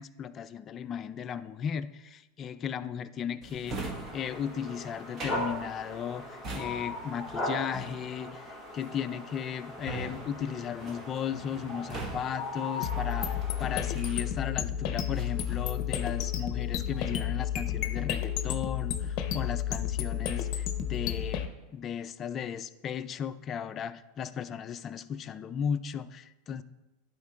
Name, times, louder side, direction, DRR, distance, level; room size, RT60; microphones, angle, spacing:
voice 1, 0.0-26.6, left 8 dB, 30° left, 11 dB, 0.3 m, -36 dB
Drawer open or close, 3.4-14.7 15.1-16.4 16.7-17.3, right 3 dB, 30° right, 1.1 m, -43 dB
sound 1, 3.8-13.9, left 1 dB, 10° right, 2.4 m, -39 dB
sound 2, 12.8-21.5, left 10 dB, 45° left, 0.7 m, -31 dB
11.0 x 4.4 x 3.9 m, 1.0 s
supercardioid pair, 135°, 0 cm